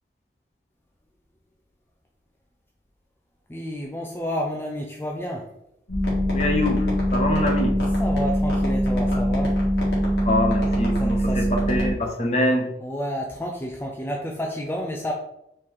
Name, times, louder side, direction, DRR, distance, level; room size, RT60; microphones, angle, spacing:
voice 1, 3.5-5.5 8.0-9.5 11.0-11.5 12.8-15.1, equal, 10° left, -1 dB, 0.4 m, -30 dB
sound 1, 5.9-11.9, equal, 70° left, 1.7 m, -22 dB
voice 2, 6.3-6.9 7.1-7.8 10.2-12.7, left 1 dB, 35° left, 3 dB, 0.7 m, -24 dB
4.3 x 3.2 x 3.6 m, 0.81 s
head